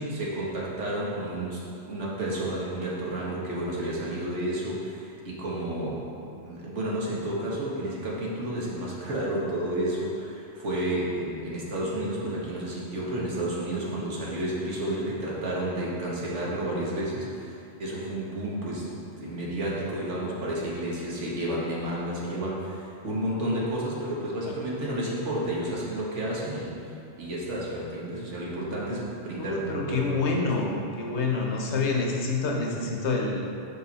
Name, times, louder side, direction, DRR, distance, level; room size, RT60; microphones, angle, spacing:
voice 1, 0.1-1.6 1.9-6.1 6.4-26.9 27.2-30.3, right 1 dB, 85° right, -5 dB, 1.5 m, -31 dB
voice 2, 29.4-33.5, left 3 dB, 70° left, 0 dB, 1.1 m, -27 dB
5.4 x 4.9 x 4.0 m, 2.7 s
omnidirectional pair, 1.2 m